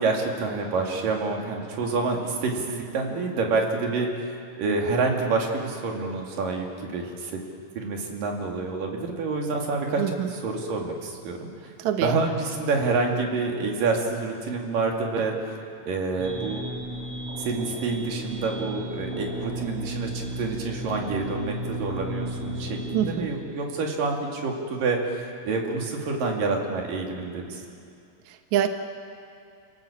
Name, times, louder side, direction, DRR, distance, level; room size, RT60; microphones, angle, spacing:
voice 1, 0.0-4.3 4.6-7.3 7.8-10.0 10.3-11.7 12.0-15.3 15.9-16.7 17.4-27.6, right 3 dB, 85° right, 1 dB, 4.2 m, -28 dB
voice 2, 10.0-10.3 11.8-12.2 22.9-23.3 28.3-28.7, right 10 dB, 70° right, 6 dB, 2.2 m, -25 dB
sound 1, 16.2-23.2, right 1 dB, 50° right, 6.4 m, -34 dB
30.0 x 17.5 x 7.3 m, 2.5 s
omnidirectional pair, 3.8 m